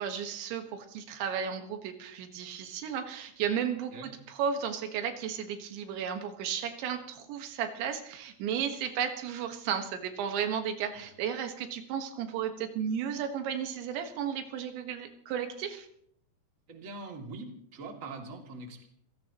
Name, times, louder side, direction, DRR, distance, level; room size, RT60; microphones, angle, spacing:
voice 1, 0.0-4.1 4.4-15.9, right 8 dB, 90° right, 6 dB, 3.8 m, -34 dB
voice 2, 16.7-18.9, right 3 dB, 25° right, 2 dB, 1.9 m, -43 dB
28.5 x 16.5 x 3.0 m, 0.66 s
omnidirectional pair, 5.1 m